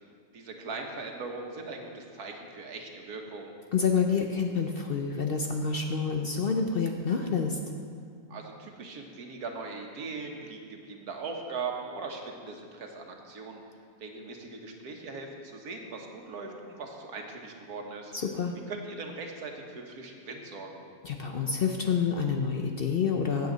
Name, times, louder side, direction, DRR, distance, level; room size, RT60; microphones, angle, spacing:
voice 1, 0.3-3.5 8.3-13.6 14.0-18.3 18.7-20.8, right 4 dB, 90° right, 2 dB, 1.7 m, -40 dB
voice 2, 3.7-7.6 18.1-18.6 21.0-23.5, left 5 dB, 55° left, 3 dB, 0.6 m, -28 dB
15.5 x 8.4 x 3.9 m, 2.2 s
omnidirectional pair, 1.6 m